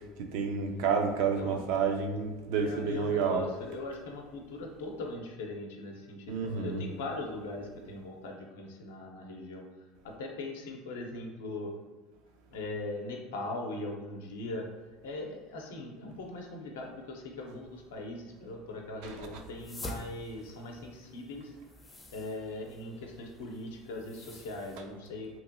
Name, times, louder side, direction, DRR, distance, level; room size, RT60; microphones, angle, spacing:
voice 1, 0.3-3.4 6.3-6.8 19.0-19.4 24.8-24.9, right 6 dB, 70° right, 4 dB, 0.4 m, -30 dB
voice 2, 2.5-11.7 12.5-14.7 15.0-21.6 22.1-25.3, left 2 dB, 90° left, 1 dB, 0.5 m, -40 dB
sound 1, 19.4-24.8, left 1 dB, 20° left, 0.4 m, -48 dB
2.9 x 2.6 x 2.6 m, 1.2 s
supercardioid pair, 100°, 0 cm